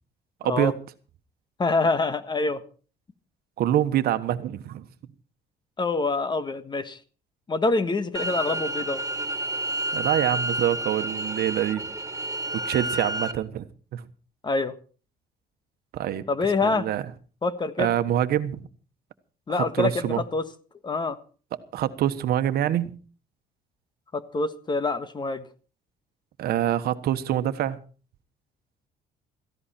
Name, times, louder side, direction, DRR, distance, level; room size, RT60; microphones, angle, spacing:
voice 1, 0.4-0.7 3.6-4.8 9.9-11.9 12.6-13.6 13.9-14.0 15.9-16.3 16.6-17.0 17.8-18.6 19.5-20.2 21.7-23.0 26.4-27.8, right 11 dB, 70° right, 1.3 m, -25 dB
voice 2, 1.6-2.6 5.8-7.0 7.5-9.0 14.4-14.7 16.3-16.9 17.4-17.9 19.5-20.4 20.8-21.2 24.1-25.4, left 3 dB, 25° left, 1.5 m, -26 dB
sound 1, 8.1-13.3, right 1 dB, 20° right, 1.7 m, -30 dB
17.0 x 15.0 x 4.4 m
cardioid pair, 110°, 17 cm